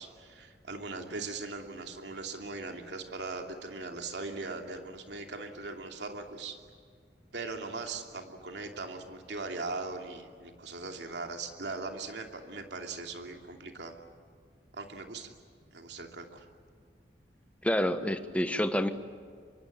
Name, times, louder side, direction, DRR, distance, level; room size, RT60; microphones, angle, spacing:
voice 1, 0.0-6.6 7.3-13.9 14.7-15.3 15.7-16.5, right 3 dB, 80° right, 4 dB, 2.8 m, -40 dB
voice 2, 17.6-18.9, equal, 10° left, 9 dB, 1.3 m, -28 dB
25.0 x 24.0 x 8.7 m, 2.2 s
head